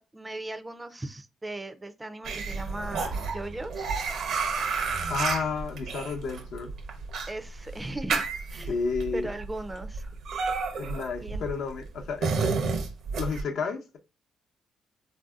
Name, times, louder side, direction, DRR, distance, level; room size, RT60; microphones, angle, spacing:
voice 1, 0.0-4.0 7.3-8.2 8.5-8.7 9.1-10.2 11.2-11.4, right 1 dB, 15° right, 0.4 m, -38 dB
sound 1, 2.2-13.4, right 4 dB, 70° right, 0.7 m, -31 dB
voice 2, 5.1-6.7 8.7-9.3 10.7-12.5 13.2-14.0, left 5 dB, 75° left, 0.7 m, -31 dB
3.3 x 2.6 x 2.3 m
cardioid pair, 90°, 0 cm